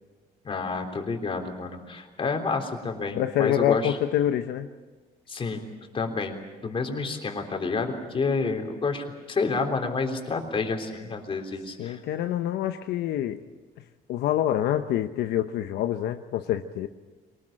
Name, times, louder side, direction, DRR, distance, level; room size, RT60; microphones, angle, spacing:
voice 1, 0.4-4.0 5.3-5.6 5.9-6.4 6.6-12.0, left 4 dB, 30° left, 4 dB, 3.7 m, -29 dB
voice 2, 3.1-4.7 11.8-13.4 14.1-16.9, left 11 dB, 75° left, 7 dB, 0.9 m, -26 dB
23.0 x 20.0 x 8.9 m, 1.3 s
cardioid pair, 110°, 17 cm